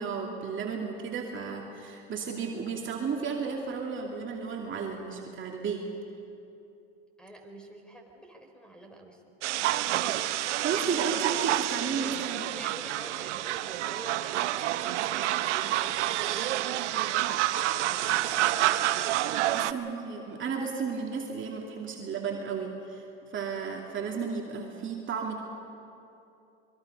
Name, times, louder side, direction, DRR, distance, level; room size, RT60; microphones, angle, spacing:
voice 1, 0.0-5.8 10.4-12.6 19.4-25.5, right 5 dB, 35° right, 0 dB, 2.6 m, -34 dB
voice 2, 7.2-9.4 12.4-18.2 19.7-19.9, right 1 dB, 5° left, 3 dB, 4.0 m, -48 dB
sound 1, 9.4-19.7, right 14 dB, 80° right, 0.8 m, -28 dB
26.5 x 22.5 x 5.4 m, 2.8 s
hypercardioid pair, 90°, 35 cm